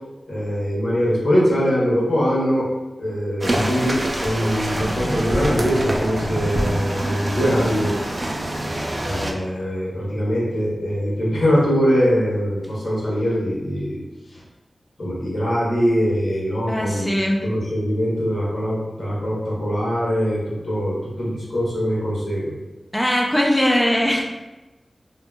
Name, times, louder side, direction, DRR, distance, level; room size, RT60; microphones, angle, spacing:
voice 1, 0.3-2.7 3.0-7.9 9.0-14.0 14.3-14.4 15.0-22.5, equal, 85° left, -7 dB, 0.9 m, -22 dB
sound 1, 3.4-9.3, right 1 dB, 45° right, 0.4 m, -25 dB
voice 2, 16.7-17.4 22.9-24.2, equal, 10° left, -1 dB, 0.4 m, -20 dB
2.8 x 2.6 x 2.2 m, 1.1 s
cardioid pair, 50°, 0 cm